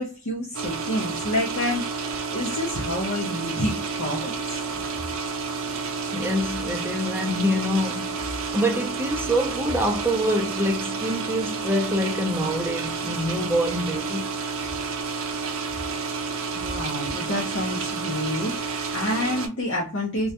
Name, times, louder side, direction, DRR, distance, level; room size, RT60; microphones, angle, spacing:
voice 1, 0.0-4.6 15.7-16.0 16.5-20.3, left 1 dB, 55° left, 0.6 m, -29 dB
sound 1, 0.5-19.5, right 4 dB, 70° right, 0.5 m, -30 dB
voice 2, 6.1-14.3, equal, 10° right, 0.4 m, -26 dB
2.2 x 2.0 x 2.7 m
head